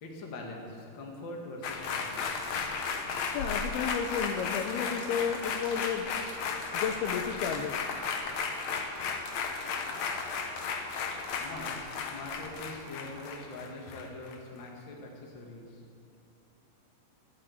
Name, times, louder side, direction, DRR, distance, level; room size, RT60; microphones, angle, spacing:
voice 1, 0.0-2.3 11.4-15.8, left 2 dB, 40° left, -1 dB, 2.1 m, -43 dB
sound 1, 1.6-14.3 14.7-14.8, left 5 dB, 65° left, 1.7 m, -34 dB
voice 2, 3.3-6.1 6.7-7.8, left 7 dB, 90° left, 8 dB, 2.8 m, -32 dB
15.0 x 8.5 x 8.4 m, 2.4 s
omnidirectional pair, 4.3 m